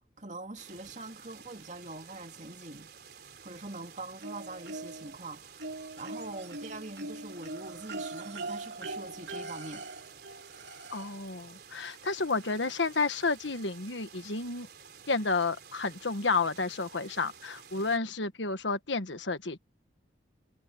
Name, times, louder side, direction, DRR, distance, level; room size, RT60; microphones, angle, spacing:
voice 1, 0.2-2.9 3.4-9.9, right 2 dB, 40° right, 2.6 m, -43 dB
sound 1, 0.6-18.0, right 6 dB, 60° right, 4.6 m, -52 dB
sound 2, 4.2-5.2 5.6-11.3 12.5-12.6 13.0-13.1, right 2 dB, 75° right, 3.4 m, -41 dB
voice 2, 10.9-14.7 15.1-19.6, left 3 dB, 85° left, 1.5 m, -31 dB
head